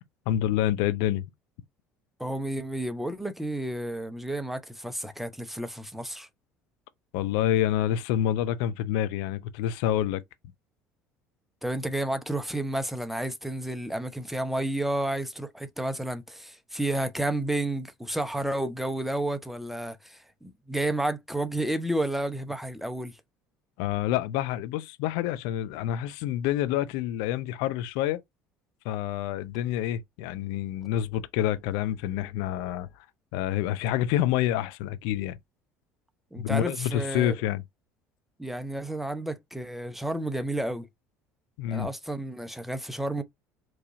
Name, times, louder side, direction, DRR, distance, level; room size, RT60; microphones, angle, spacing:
voice 1, 0.3-1.2 7.1-10.2 23.8-28.2 28.8-32.9 33.3-35.4 36.4-37.6 41.6-41.9, left 12 dB, 65° left, 0.5 m, -27 dB
voice 2, 2.2-6.3 11.6-23.2 36.3-37.3 38.4-40.9 41.7-43.2, right 1 dB, 5° right, 0.8 m, -31 dB
4.6 x 3.0 x 2.6 m
figure-of-eight pair, 60°, 8 cm